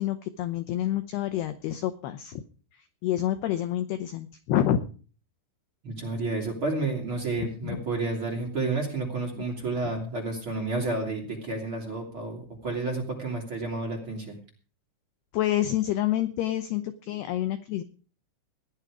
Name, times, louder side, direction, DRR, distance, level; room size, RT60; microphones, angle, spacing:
voice 1, 0.0-2.4 3.0-4.9 7.4-7.8 15.3-17.8, left 12 dB, 85° left, 10 dB, 2.3 m, -28 dB
voice 2, 5.8-14.3, right 3 dB, 35° right, 0 dB, 2.6 m, -30 dB
17.0 x 10.5 x 4.9 m, 0.38 s
omnidirectional pair, 5.6 m